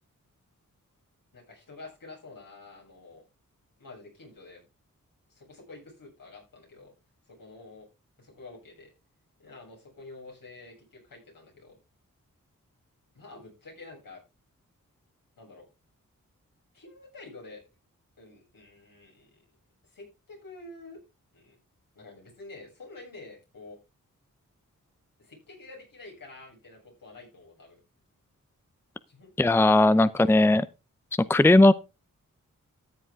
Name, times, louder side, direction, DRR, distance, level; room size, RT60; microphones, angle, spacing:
voice 1, 1.3-3.2 3.8-4.6 5.3-6.9 7.3-7.9 8.2-8.9 9.4-11.8 13.1-14.2 15.4-15.7 16.7-17.6 18.2-19.4 19.8-21.0 21.3-21.6 21.9-23.8 25.2-27.8 29.1-29.3 29.9-30.1, left 3 dB, 80° left, 7.8 m, -48 dB
voice 2, 29.4-30.7 31.3-31.7, left 2 dB, 5° left, 0.6 m, -18 dB
14.0 x 7.9 x 3.7 m
cardioid pair, 50°, 33 cm